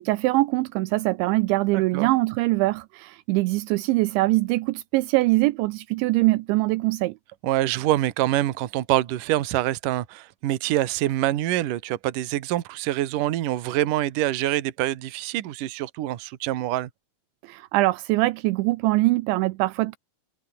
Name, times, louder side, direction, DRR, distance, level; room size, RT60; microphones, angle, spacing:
voice 1, 0.0-7.1 17.4-20.0, right 20 dB, 80° right, 2.9 m, -23 dB
voice 2, 1.7-2.1 7.4-16.9, right 14 dB, 60° right, 2.3 m, -25 dB
omnidirectional pair, 5.5 m